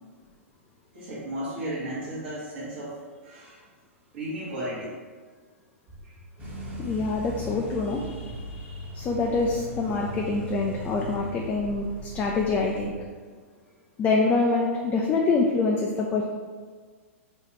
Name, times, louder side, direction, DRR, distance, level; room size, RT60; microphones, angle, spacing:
voice 1, 0.9-3.6 4.1-4.9 6.0-6.2, right 1 dB, 50° right, -9 dB, 1.0 m, -34 dB
sound 1, 6.4-12.9, equal, 20° right, 0.9 m, -38 dB
voice 2, 6.8-12.9 14.0-16.2, left 3 dB, 20° left, -1 dB, 0.3 m, -26 dB
4.3 x 2.3 x 3.1 m, 1.5 s
figure-of-eight pair, 110°, 8 cm